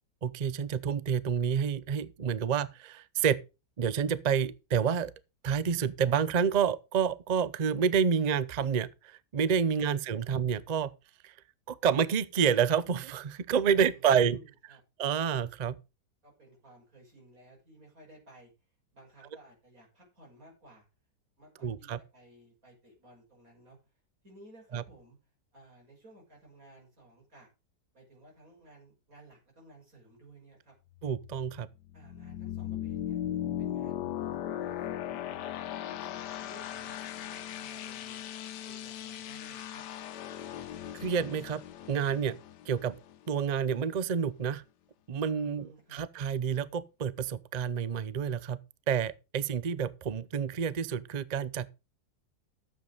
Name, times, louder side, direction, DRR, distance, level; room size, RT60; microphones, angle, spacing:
voice 1, 0.2-3.4 3.8-5.1 5.4-10.9 11.2-11.3 11.7-14.4 15.0-15.7 21.6-22.0 24.7-24.8 31.0-31.7 41.0-41.6 41.9-42.4 42.7-42.9 43.3-44.6 45.1-48.6 48.9-51.7, right 7 dB, 75° right, 0.3 m, -29 dB
voice 2, 9.7-10.3 13.9-14.8 16.2-18.5 18.9-20.8 21.4-23.8 24.2-25.2 25.5-27.5 27.9-30.7 31.9-33.2 33.6-35.4 35.7-38.2 38.6-39.8 45.4-46.0, right 1 dB, 55° right, 6.8 m, -56 dB
sound 1, 31.0-43.6, left 11 dB, 85° left, 1.4 m, -38 dB
12.0 x 7.9 x 5.0 m
omnidirectional pair, 1.8 m